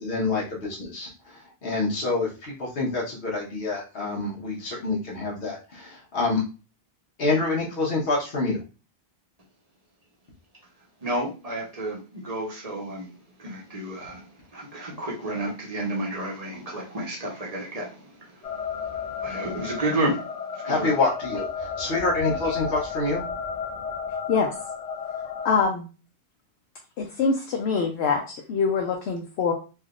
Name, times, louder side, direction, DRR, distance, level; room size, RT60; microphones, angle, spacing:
voice 1, 0.0-6.4 7.2-8.6 20.7-23.2, left 3 dB, 70° left, 1.2 m, -27 dB
voice 2, 11.0-13.1 13.4-20.9 22.4-22.5, right 1 dB, 40° right, 0.9 m, -31 dB
sound 1, 18.4-25.6, left 6 dB, 55° left, 0.5 m, -32 dB
voice 3, 25.4-25.9 27.0-29.5, left 5 dB, 85° left, 0.9 m, -24 dB
3.4 x 2.6 x 2.3 m
omnidirectional pair, 1.1 m